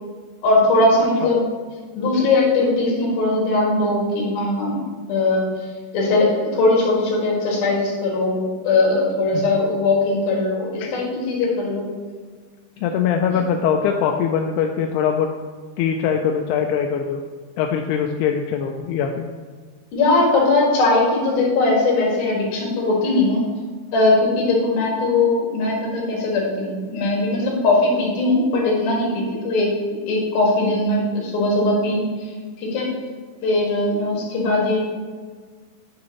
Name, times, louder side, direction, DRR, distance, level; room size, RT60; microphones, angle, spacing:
voice 1, 0.4-1.4 2.0-4.8 5.1-5.5 5.9-11.8 19.9-23.5 23.9-29.7 30.1-32.2 32.6-32.9 33.4-34.8, left 2 dB, 70° left, -3 dB, 3.7 m, -20 dB
voice 2, 12.8-15.3 15.8-17.2 17.6-19.3, left 7 dB, 90° left, 3 dB, 2.6 m, -22 dB
9.5 x 7.2 x 3.1 m, 1.5 s
omnidirectional pair, 4.5 m